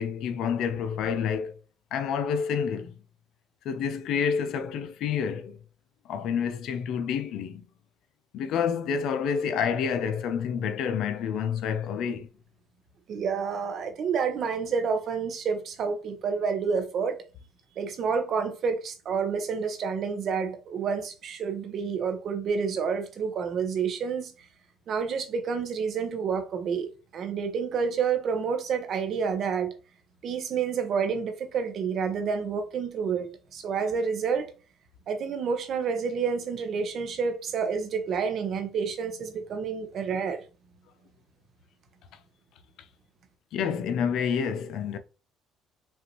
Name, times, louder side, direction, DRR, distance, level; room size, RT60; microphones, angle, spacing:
voice 1, 0.0-1.6 1.9-2.9 3.6-5.6 6.0-7.6 8.3-12.3 43.5-45.0, left 7 dB, 70° left, 0.6 m, -28 dB
voice 2, 13.1-17.2 17.8-24.5 24.9-29.7 30.2-34.5 35.1-40.4, right 6 dB, 55° right, 1.0 m, -29 dB
5.5 x 2.5 x 3.0 m
supercardioid pair, 90°, 0 cm